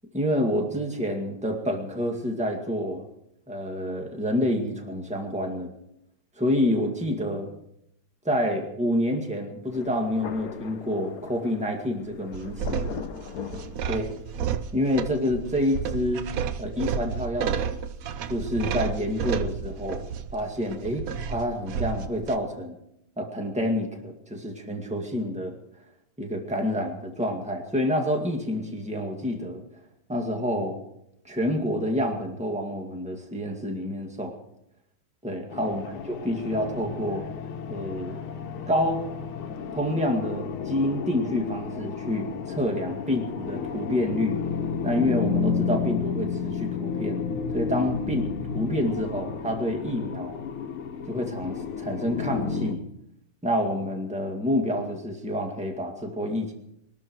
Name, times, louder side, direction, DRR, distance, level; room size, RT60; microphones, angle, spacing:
voice 1, 0.1-3.0 3.5-5.7 6.4-7.5 8.2-12.9 13.9-14.1 14.7-16.2 16.6-17.8 18.3-20.0 20.3-22.8 23.2-25.5 26.2-29.6 30.1-30.8 31.2-34.3 35.2-37.2 37.7-38.2 38.7-39.0 39.7-44.4 44.8-47.2 47.5-48.2 48.5-50.4 51.1-52.8 53.4-56.5, left 1 dB, 5° right, 2 dB, 1.8 m, -28 dB
Thunder, 9.7-14.5, left 6 dB, 55° left, 1.2 m, -40 dB
sound 1, 12.3-22.4, right 7 dB, 80° right, 0.7 m, -31 dB
sound 2, 35.5-52.8, left 6 dB, 80° left, 1.9 m, -32 dB
21.5 x 12.5 x 4.7 m, 0.78 s
omnidirectional pair, 2.4 m